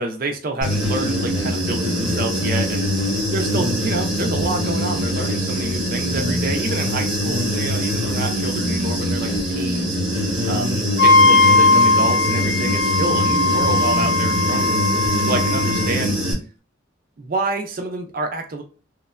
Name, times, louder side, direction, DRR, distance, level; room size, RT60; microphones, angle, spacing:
voice 1, 0.0-10.0 10.5-14.8 15.2-16.2 17.2-18.6, right 2 dB, 45° right, 4 dB, 0.4 m, -28 dB
Human voice / Buzz, 0.6-16.3, equal, 5° right, 0.8 m, -23 dB
Wind instrument woodwind instrument, 11.0-15.9, left 2 dB, 55° left, 0.3 m, -18 dB
3.0 x 2.1 x 2.3 m, 0.35 s
head